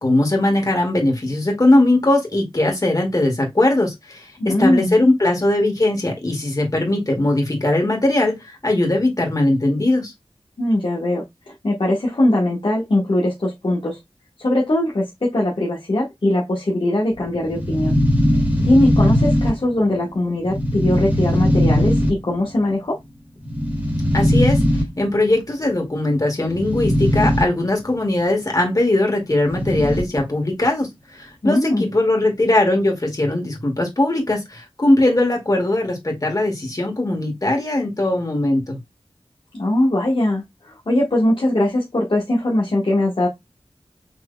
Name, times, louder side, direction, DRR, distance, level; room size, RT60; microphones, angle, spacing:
voice 1, 0.0-10.1 24.1-24.6 25.0-30.9 31.1-38.8, left 1 dB, 35° left, 2.2 m, -19 dB
voice 2, 4.4-4.9 10.6-14.0 14.4-18.0 18.6-23.0 31.4-31.8 39.5-40.4 40.9-43.3, left 1 dB, 60° left, 1.4 m, -20 dB
sound 1, 17.1-20.0 20.4-22.5 23.4-25.2 26.4-27.4 27.7-27.8 29.4-30.2, equal, 15° right, 2.4 m, -19 dB
6.1 x 3.5 x 2.3 m
wide cardioid pair, 65°, 10 cm